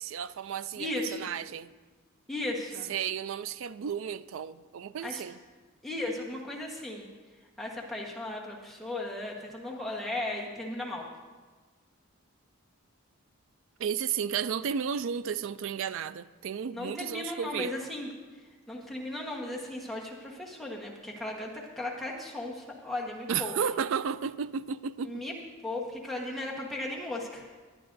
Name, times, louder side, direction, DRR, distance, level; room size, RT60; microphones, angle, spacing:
voice 1, 0.0-1.7 2.9-5.4 13.8-17.7 23.3-25.2, right 7 dB, 60° right, 0.3 m, -33 dB
voice 2, 0.8-1.3 2.3-2.9 5.0-5.2 5.8-7.1 7.6-11.1 16.7-18.1 18.7-23.5 25.0-25.3 25.6-27.5, left 1 dB, ahead, 1.1 m, -36 dB
19.5 x 10.5 x 2.6 m
head